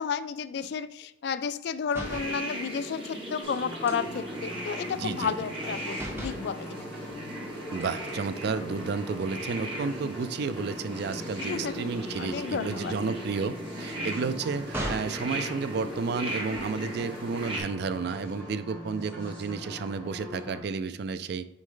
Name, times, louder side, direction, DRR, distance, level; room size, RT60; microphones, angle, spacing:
voice 1, 0.0-6.7 11.4-11.9 12.2-12.9, left 6 dB, 65° left, 15 dB, 0.3 m, -32 dB
sound 1, 1.8-2.4 3.9-5.7 5.9-6.5 7.8-8.8 9.3-9.5 9.8-15.2 16.3-17.0, equal, 15° right, 1.0 m, -41 dB
sound 2, 2.0-17.6, right 1 dB, 30° right, 1.3 m, -38 dB
sound 3, 3.4-20.6, left 1 dB, 10° left, 2.4 m, -42 dB
voice 2, 4.9-5.5 7.7-21.4, right 5 dB, 65° right, 13 dB, 0.4 m, -32 dB
6.2 x 4.3 x 3.8 m, 0.78 s
head